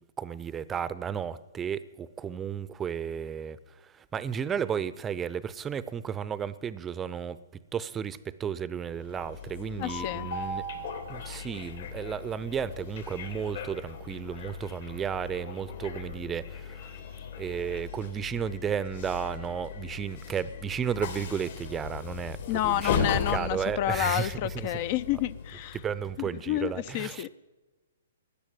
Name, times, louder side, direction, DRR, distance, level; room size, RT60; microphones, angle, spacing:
voice 1, 0.2-7.4 7.7-10.6 11.1-17.0 17.4-24.7 25.7-27.3, right 7 dB, 15° right, 0.6 m, -33 dB
Train, 8.8-26.1, left 5 dB, 65° left, 2.9 m, -37 dB
voice 2, 9.8-10.3 22.5-25.8 26.5-27.3, left 13 dB, 45° left, 0.5 m, -29 dB
14.0 x 10.0 x 9.1 m
hypercardioid pair, 130°, 0 cm